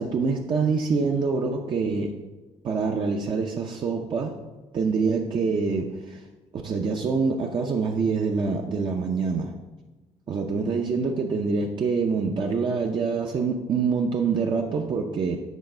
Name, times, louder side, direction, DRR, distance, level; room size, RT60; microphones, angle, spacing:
voice 1, 0.0-2.1 2.6-4.4 4.7-6.2 6.5-9.6 10.3-15.4, right 4 dB, 40° right, 1 dB, 0.6 m, -25 dB
8.2 x 4.0 x 6.5 m, 1.2 s
cardioid pair, 160°, 12 cm